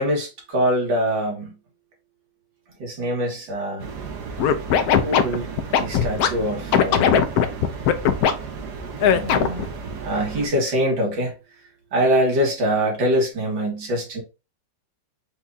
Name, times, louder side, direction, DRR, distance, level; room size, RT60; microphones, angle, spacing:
voice 1, 0.0-1.5 2.8-3.9 5.0-5.5 5.8-7.3 9.0-9.6 10.0-11.3 11.9-14.2, equal, 85° right, 2.4 m, -24 dB
sound 1, 3.8-10.5, right 5 dB, 65° right, 1.4 m, -34 dB
Scratching (performance technique), 4.4-6.3 6.7-8.3 9.0-9.6, left 8 dB, 70° left, 1.0 m, -18 dB
4.7 x 2.4 x 3.9 m
omnidirectional pair, 2.0 m